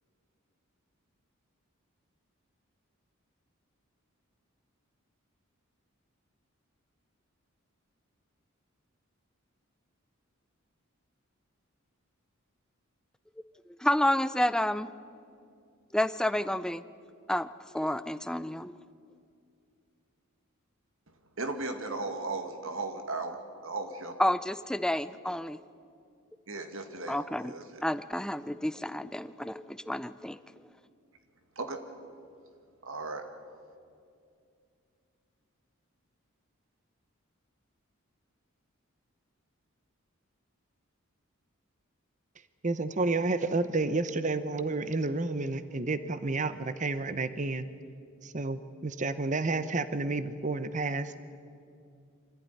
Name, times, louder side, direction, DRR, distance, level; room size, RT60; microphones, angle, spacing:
voice 1, 13.8-14.9 15.9-16.8 17.3-17.5 17.7-18.8 24.2-25.6 27.1-27.5 27.8-30.4, left 1 dB, 5° left, 14 dB, 0.5 m, -29 dB
voice 2, 21.4-23.4 23.6-24.2 26.5-27.8 31.6-31.8 32.8-33.2, right 3 dB, 70° right, 6 dB, 2.2 m, -36 dB
voice 3, 42.6-47.6 48.2-51.4, right 3 dB, 35° right, 13 dB, 0.8 m, -30 dB
24.5 x 15.5 x 9.7 m, 2.4 s
head